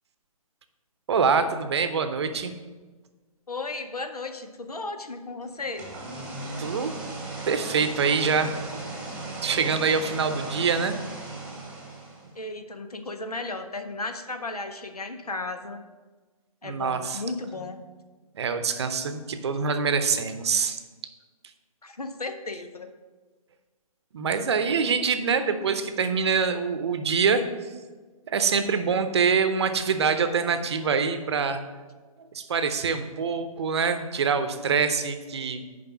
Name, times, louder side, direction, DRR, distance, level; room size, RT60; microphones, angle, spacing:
voice 1, 1.1-2.5 6.6-6.9 7.5-8.5 9.4-11.0 16.6-17.2 18.3-20.8 24.1-27.4 28.3-31.6 32.2-35.6, right 5 dB, 45° right, 9 dB, 0.7 m, -25 dB
voice 2, 3.5-5.9 12.3-15.8 16.6-17.8 21.8-22.9, left 3 dB, 85° left, 8 dB, 0.8 m, -35 dB
sound 1, 5.6-12.4, right 2 dB, 5° right, 1.2 m, -37 dB
6.8 x 5.2 x 6.0 m, 1.3 s
figure-of-eight pair, 140°, 19 cm